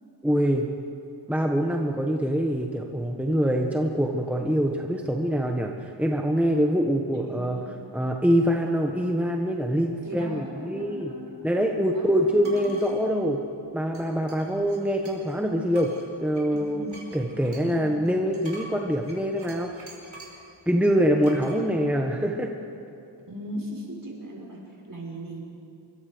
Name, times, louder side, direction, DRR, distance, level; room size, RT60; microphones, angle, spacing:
voice 1, 0.2-0.7 1.3-11.1 11.4-13.4 13.7-15.9 16.2-16.8 17.1-19.9 20.7-22.5, equal, 5° right, 2 dB, 1.4 m, -24 dB
voice 2, 7.3-7.8 10.0-11.5 11.9-13.0 16.5-17.0 17.4-18.0 21.3-21.9 23.3-25.4, equal, 45° right, -1 dB, 5.5 m, -39 dB
sound 1, 12.4-13.0 13.9-15.4 15.7-20.5 21.2-21.6, right 1 dB, 70° right, 4.9 m, -46 dB
25.0 x 23.0 x 5.2 m, 2.7 s
wide cardioid pair, 80°, 46 cm